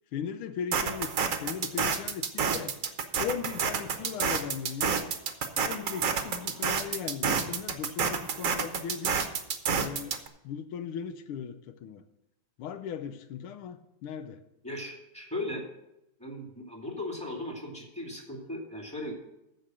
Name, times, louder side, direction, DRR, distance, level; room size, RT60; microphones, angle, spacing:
voice 1, 0.1-2.8 3.2-5.0 5.6-9.2 9.7-10.2 10.4-12.0 12.6-14.4, left 8 dB, 85° left, 10 dB, 1.6 m, -38 dB
sound 1, 0.7-10.3, right 6 dB, 50° right, 1.0 m, -29 dB
voice 2, 14.6-15.6 16.2-19.1, left 1 dB, 5° left, -1 dB, 2.2 m, -37 dB
14.5 x 4.8 x 7.5 m, 0.85 s
omnidirectional pair, 2.3 m